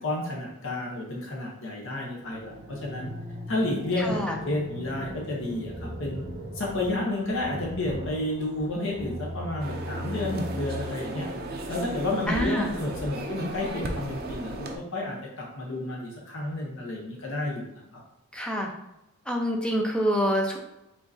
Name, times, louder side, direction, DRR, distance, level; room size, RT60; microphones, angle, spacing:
voice 1, 0.0-3.1 3.5-6.2 6.5-11.3 11.7-17.7 17.9-18.0, left 2 dB, 60° left, -1 dB, 0.8 m, -31 dB
sound 1, 2.2-12.1, equal, 20° right, 1.2 m, -39 dB
voice 2, 4.0-4.4 12.3-12.7 18.3-18.7 19.3-20.6, equal, 5° left, 0 dB, 0.5 m, -26 dB
sound 2, 9.6-14.8, right 1 dB, 45° right, 0.5 m, -35 dB
5.0 x 3.6 x 2.7 m, 0.91 s
head